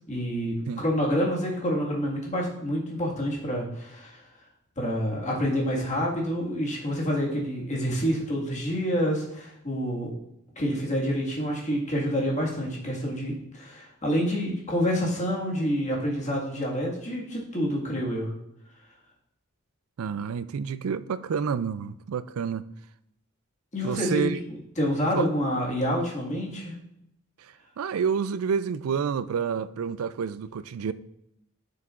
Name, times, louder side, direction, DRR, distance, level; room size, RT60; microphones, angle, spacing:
voice 1, 0.1-4.2 4.8-10.1 10.6-18.3 23.7-26.7, equal, 35° left, 1.8 m, -28 dB
voice 2, 20.0-22.6 23.8-24.4 25.1-25.3 27.4-30.9, right 6 dB, 85° right, 0.4 m, -29 dB
10.5 x 6.6 x 2.5 m
head